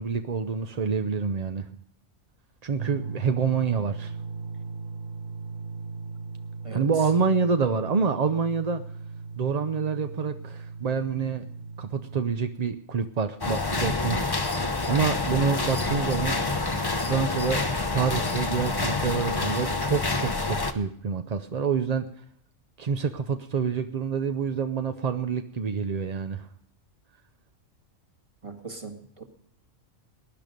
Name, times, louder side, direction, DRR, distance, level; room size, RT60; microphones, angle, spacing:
voice 1, 0.0-1.6 2.6-4.1 6.7-8.8 9.4-11.4 11.8-16.4 17.0-17.6 17.9-22.1 22.8-26.5, right 5 dB, 45° right, 8 dB, 0.5 m, -27 dB
sound 1, 2.8-12.2, right 4 dB, 70° right, 1.3 m, -38 dB
sound 2, 13.4-20.7, left 3 dB, 20° left, 0.8 m, -27 dB
voice 2, 28.4-29.2, right 4 dB, 25° right, 4 dB, 1.8 m, -40 dB
19.5 x 11.0 x 5.2 m, 0.70 s
omnidirectional pair, 1.4 m